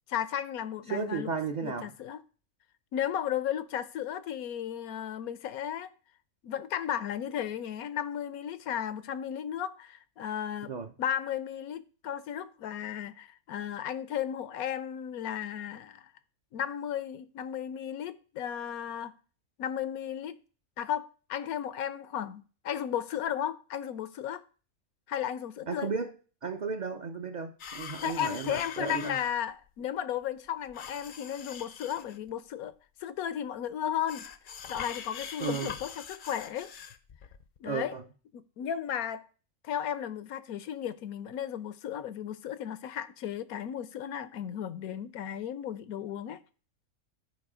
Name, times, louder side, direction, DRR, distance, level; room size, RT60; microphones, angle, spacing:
voice 1, 0.1-1.3 1.6-2.2 2.9-5.9 6.4-10.7 11.0-16.1 16.5-19.1 19.6-20.3 20.8-24.4 25.1-25.9 28.0-32.7 33.0-34.2 34.7-36.7 37.6-37.9 38.3-39.2 39.6-46.4, left 9 dB, 80° left, 1.1 m, -34 dB
voice 2, 0.9-1.9 10.7-10.9 25.7-26.1 26.4-29.2 35.4-35.7 37.6-38.0, right 5 dB, 45° right, 0.6 m, -34 dB
sound 1, 27.6-29.3 30.7-32.3 34.1-37.6, left 7 dB, 50° left, 0.6 m, -43 dB
11.5 x 4.8 x 4.9 m
omnidirectional pair, 1.5 m